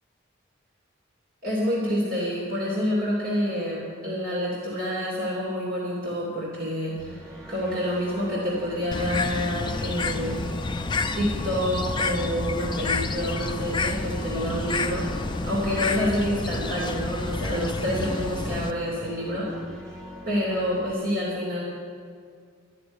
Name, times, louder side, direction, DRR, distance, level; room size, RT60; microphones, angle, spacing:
voice 1, 1.4-7.1 7.5-10.4 11.1-19.5 20.3-21.6, equal, 45° right, -5 dB, 2.9 m, -28 dB
sound 1, 6.9-20.9, equal, 15° right, 2.1 m, -43 dB
Bird, 8.9-18.7, left 3 dB, 20° left, 0.4 m, -29 dB
12.5 x 6.8 x 9.8 m, 2.1 s
head